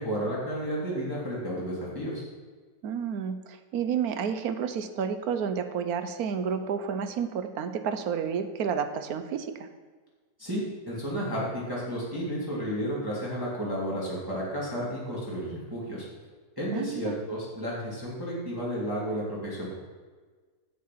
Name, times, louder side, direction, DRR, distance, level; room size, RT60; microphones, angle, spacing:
voice 1, 0.0-2.2 10.4-16.1 16.6-19.7, equal, 15° right, -7 dB, 2.3 m, -32 dB
voice 2, 2.8-9.7 16.7-17.2, right 7 dB, 75° right, 9 dB, 1.2 m, -30 dB
8.3 x 7.6 x 5.8 m, 1.4 s
omnidirectional pair, 1.6 m